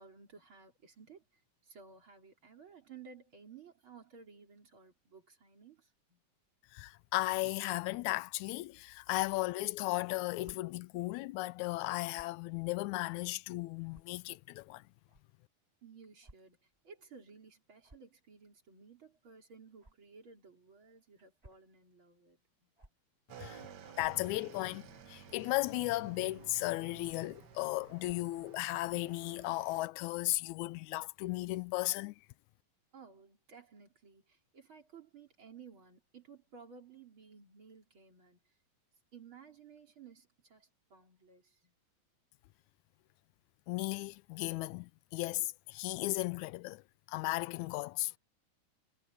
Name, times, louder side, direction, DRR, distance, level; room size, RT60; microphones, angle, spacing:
voice 1, 0.0-6.2 15.8-22.7 32.9-38.5 39.1-41.7, right 5 dB, 40° right, 4.4 m, -56 dB
voice 2, 6.7-14.8 23.4-23.6 24.0-32.2 43.7-46.8 47.1-48.2, left 19 dB, 80° left, 2.0 m, -35 dB
sound 1, 10.4-10.6 12.1-12.4 13.1-13.2 13.9-14.0 15.1-15.2 16.2-16.4 16.7-16.8 17.8-18.1 19.8-19.9 21.2-21.7 22.8-22.9 23.9-24.2 24.9-25.2 26.0-26.3 27.0-27.3 28.0-28.3, right 1 dB, 15° right, 2.7 m, -59 dB
Motorcycle / Engine, 23.3-29.9, right 8 dB, 60° right, 1.1 m, -54 dB
omnidirectional pair, 3.4 m